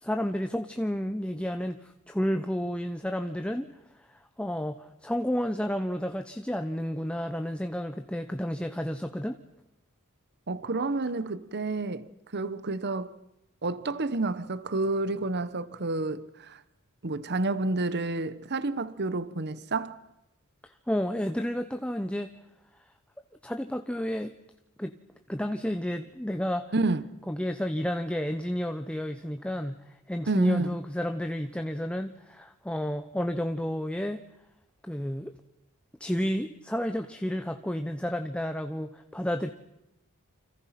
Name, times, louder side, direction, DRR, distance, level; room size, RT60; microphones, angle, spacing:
voice 1, 0.0-9.4 20.6-22.3 23.4-24.3 24.8-24.9 25.3-26.7 27.3-34.2 34.8-35.3 36.0-39.5, equal, 5° left, 0.8 m, -31 dB
voice 2, 10.5-13.1 13.6-16.6 17.0-20.0 26.7-27.2 30.3-30.8, right 2 dB, 50° right, 1.0 m, -30 dB
29.0 x 26.0 x 5.9 m
head